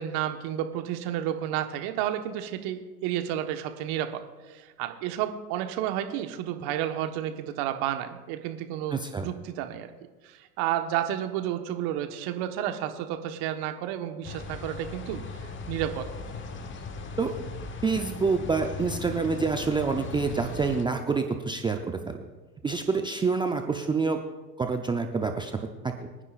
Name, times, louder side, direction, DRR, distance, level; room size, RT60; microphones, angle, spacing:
voice 1, 0.0-4.2 4.5-9.9 10.2-16.1, right 11 dB, 50° right, 6 dB, 1.3 m, -31 dB
voice 2, 8.9-9.2 17.2-17.3 17.8-22.3 22.6-24.2 24.6-25.5 25.8-25.9, right 4 dB, 10° right, 4 dB, 0.5 m, -27 dB
sound 1, 14.2-20.8, left 4 dB, 25° left, 1.1 m, -38 dB
24.5 x 9.8 x 2.5 m, 1.3 s
hypercardioid pair, 100°, 48 cm